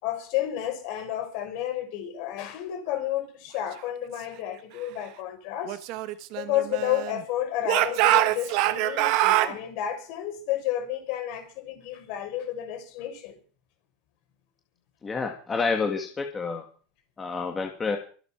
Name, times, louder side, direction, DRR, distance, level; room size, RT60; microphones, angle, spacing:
voice 1, 0.0-5.8 6.4-13.4, left 12 dB, 50° left, 7 dB, 4.9 m, -31 dB
Speech / Shout, 5.7-7.2 7.6-9.5, right 16 dB, 50° right, 1.2 m, -24 dB
voice 2, 15.0-16.6 17.2-18.0, left 4 dB, 15° left, 3 dB, 1.8 m, -28 dB
23.5 x 8.3 x 5.9 m, 0.41 s
supercardioid pair, 165°, 0 cm